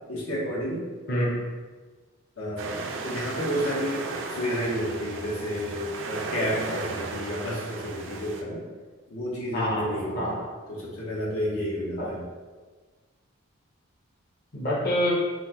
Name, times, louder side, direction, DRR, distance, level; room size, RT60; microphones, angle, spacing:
voice 1, 0.1-0.9 2.4-8.6 9.1-10.4 10.7-12.2, equal, 90° left, -4 dB, 1.0 m, -31 dB
voice 2, 1.1-1.5 9.5-10.5 12.0-12.1 14.5-15.1, equal, 45° left, -5 dB, 0.7 m, -27 dB
sound 1, 2.6-8.4, right 3 dB, 60° right, 0.4 m, -35 dB
5.5 x 2.1 x 2.9 m, 1.4 s
head